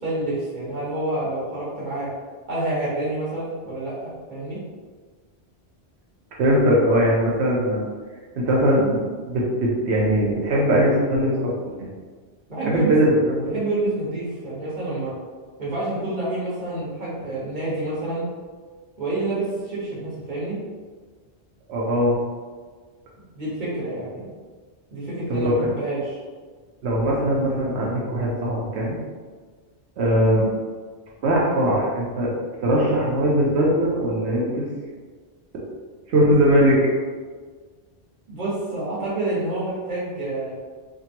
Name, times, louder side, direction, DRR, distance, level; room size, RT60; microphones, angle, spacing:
voice 1, 0.0-2.1 2.5-4.6 12.5-13.0 13.5-15.2 15.6-18.3 19.0-20.6 23.3-24.3 24.9-26.1 38.3-40.5, right 2 dB, 45° right, -8 dB, 1.3 m, -28 dB
voice 2, 6.4-7.8 8.4-11.5 11.8-11.9 12.6-13.6 21.7-22.2 25.3-25.5 26.8-29.0 30.0-30.5 31.2-32.3 32.6-34.7 35.5-35.6 36.1-36.8, equal, 75° right, -4 dB, 0.9 m, -20 dB
3.6 x 2.2 x 2.8 m, 1.5 s
omnidirectional pair, 1.1 m